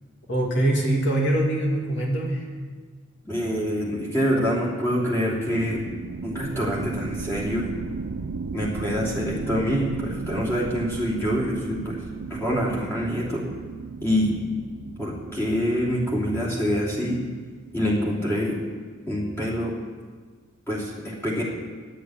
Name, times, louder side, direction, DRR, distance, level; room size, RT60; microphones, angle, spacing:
voice 1, 0.3-2.5, right 1 dB, 55° left, -2 dB, 2.3 m, -23 dB
voice 2, 3.2-5.8 6.2-7.7 8.5-12.0 12.3-13.4 14.0-14.3 15.0-17.2 17.7-18.6 19.1-19.7 20.7-21.4, equal, 10° left, -6 dB, 3.1 m, -25 dB
sound 1, 5.5-17.8, right 5 dB, 85° right, 0.4 m, -36 dB
10.5 x 8.2 x 8.9 m, 1.5 s
head